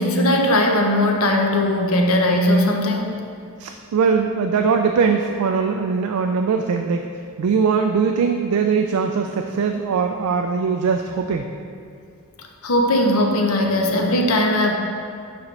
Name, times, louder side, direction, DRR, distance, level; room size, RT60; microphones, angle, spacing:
voice 1, 0.0-3.1 12.4-14.8, left 1 dB, 70° left, 2 dB, 0.8 m, -19 dB
voice 2, 3.6-7.1 7.4-11.5, right 5 dB, 80° right, 4 dB, 0.3 m, -21 dB
7.2 x 5.1 x 3.3 m, 2.4 s
head